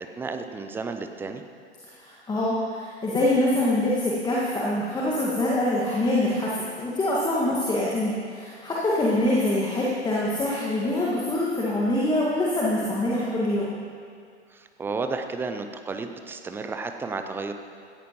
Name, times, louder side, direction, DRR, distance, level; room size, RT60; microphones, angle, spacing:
voice 1, 0.2-1.4 7.5-7.6 14.5-17.5, right 4 dB, 5° right, 7 dB, 0.4 m, -32 dB
voice 2, 2.0-6.5 6.8-13.8, left 1 dB, 10° left, -5 dB, 1.8 m, -24 dB
17.0 x 14.0 x 3.0 m, 2.3 s
figure-of-eight pair, 95°, 34 cm